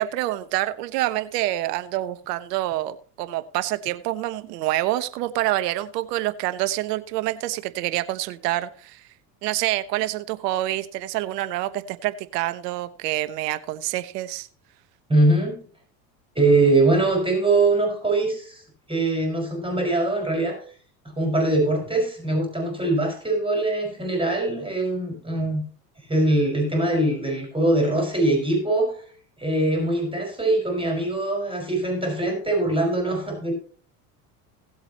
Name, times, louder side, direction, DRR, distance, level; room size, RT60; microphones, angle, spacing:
voice 1, 0.0-9.0 9.4-14.5, right 15 dB, 80° right, 13 dB, 1.2 m, -27 dB
voice 2, 15.1-15.6 16.4-18.6 18.9-20.6 21.2-25.6 26.1-29.0 29.4-33.5, right 2 dB, 10° right, 1 dB, 5.4 m, -22 dB
18.0 x 7.9 x 3.0 m, 0.43 s
hypercardioid pair, 85°, 48 cm